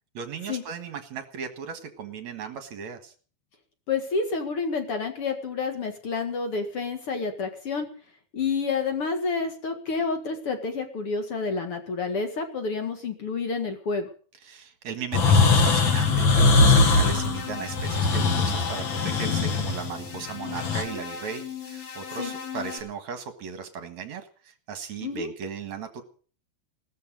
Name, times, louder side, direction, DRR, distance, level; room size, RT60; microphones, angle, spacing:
voice 1, 0.1-3.1 14.4-26.0, right 6 dB, 55° right, 7 dB, 2.2 m, -37 dB
voice 2, 3.9-7.9 8.3-14.1 22.2-22.3 25.0-25.3, left 4 dB, 50° left, 6 dB, 1.8 m, -29 dB
sound 1, 15.1-20.8, left 3 dB, 80° left, 1.1 m, -21 dB
sound 2, 15.1-22.8, left 7 dB, 65° left, 4.8 m, -38 dB
18.0 x 13.5 x 5.2 m, 0.42 s
omnidirectional pair, 5.0 m